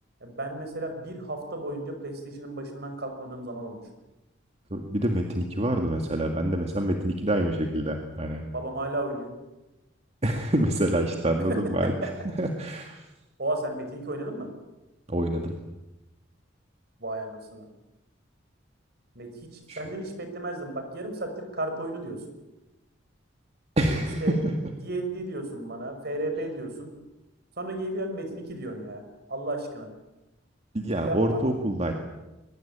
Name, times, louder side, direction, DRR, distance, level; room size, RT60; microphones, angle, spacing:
voice 1, 0.2-3.8 8.5-9.3 11.4-12.1 13.4-14.5 17.0-17.7 19.2-22.2 24.2-24.4 24.8-26.9 27.6-29.0 29.3-29.9 31.0-31.4, right 1 dB, 55° right, 6 dB, 5.6 m, -33 dB
voice 2, 4.7-8.4 10.2-11.9 12.4-13.0 15.1-15.6 19.7-19.8 23.8-24.5 30.7-31.9, right 1 dB, 35° right, 4 dB, 2.0 m, -26 dB
22.5 x 22.0 x 8.8 m, 1.0 s
head